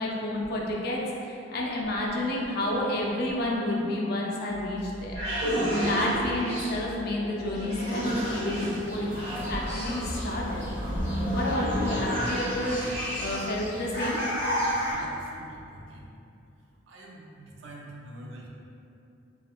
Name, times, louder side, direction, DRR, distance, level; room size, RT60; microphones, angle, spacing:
voice 1, 0.0-5.2 5.8-9.1 9.5-10.7 11.3-14.3, left 1 dB, 55° left, -3 dB, 0.4 m, -30 dB
sound 1, 4.5-13.6, equal, 65° right, 1.1 m, -31 dB
sound 2, 8.0-14.9, equal, 15° right, 1.3 m, -35 dB
voice 2, 14.9-16.0 16.9-18.5, right 1 dB, 85° right, -3 dB, 0.5 m, -45 dB
3.4 x 2.2 x 2.3 m, 2.7 s
head